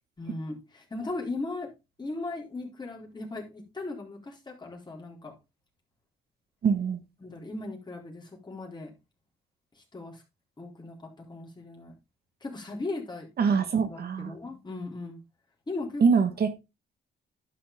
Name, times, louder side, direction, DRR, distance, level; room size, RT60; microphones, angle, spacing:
voice 1, 0.2-1.7 2.0-5.3 7.2-8.9 9.9-10.2 10.6-11.9 12.4-15.2 15.7-16.0, left 2 dB, 20° left, 4.0 m, -38 dB
voice 2, 6.6-7.0 13.4-14.3 16.0-16.6, right 5 dB, 55° right, 1.5 m, -24 dB
12.0 x 5.8 x 3.7 m
cardioid pair, 90°, 20 cm